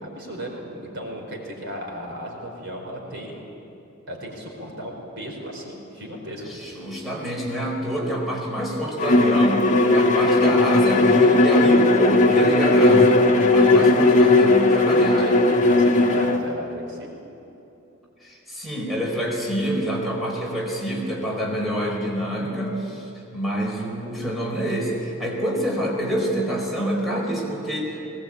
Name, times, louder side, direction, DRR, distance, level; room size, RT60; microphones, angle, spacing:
voice 1, 0.0-3.4 4.1-6.6 13.7-13.9 14.9-17.2, equal, 60° right, 0 dB, 4.7 m, -35 dB
voice 2, 6.5-15.4 18.2-28.0, right 1 dB, ahead, -4 dB, 4.5 m, -27 dB
Bowed string instrument, 9.0-16.4, left 2 dB, 35° left, 1.4 m, -17 dB
20.5 x 19.0 x 8.7 m, 2.8 s
head